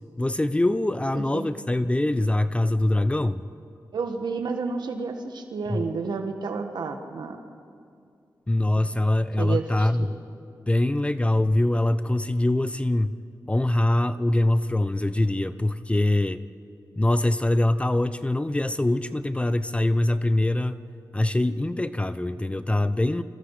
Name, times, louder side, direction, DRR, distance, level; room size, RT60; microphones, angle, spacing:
voice 1, 0.2-3.4 5.7-5.8 8.5-10.1 10.7-13.2 13.5-16.4 17.0-20.8 21.1-23.2, left 1 dB, 15° left, 13 dB, 0.7 m, -23 dB
voice 2, 1.1-1.5 3.9-7.4 9.0-9.1 9.4-10.1, right 4 dB, 90° right, 5 dB, 1.8 m, -31 dB
27.5 x 26.0 x 5.0 m, 2.3 s
wide cardioid pair, 80°, 7 cm